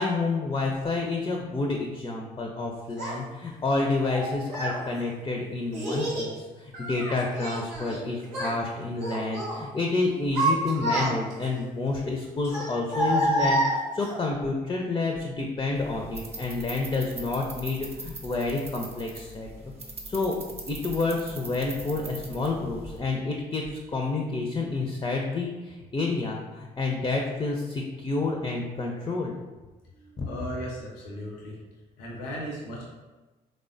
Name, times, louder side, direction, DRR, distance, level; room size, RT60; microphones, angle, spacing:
voice 1, 0.0-19.5 20.1-20.4 20.7-23.6 23.9-29.3 30.2-30.3, left 3 dB, 20° left, 1 dB, 0.4 m, -29 dB
Child speech kid speaking, 3.0-3.1 4.0-4.8 5.7-6.3 6.7-8.0 8.3-8.6 9.0-9.6 10.1-11.4 12.4-14.2, right 1 dB, 90° right, 0.7 m, -28 dB
sound 1, 15.7-23.0, right 2 dB, 30° right, 0.6 m, -42 dB
voice 2, 29.9-31.6 32.0-32.8, equal, 85° left, -3 dB, 0.5 m, -37 dB
3.1 x 2.1 x 2.6 m, 1.2 s
hypercardioid pair, 45°, 20 cm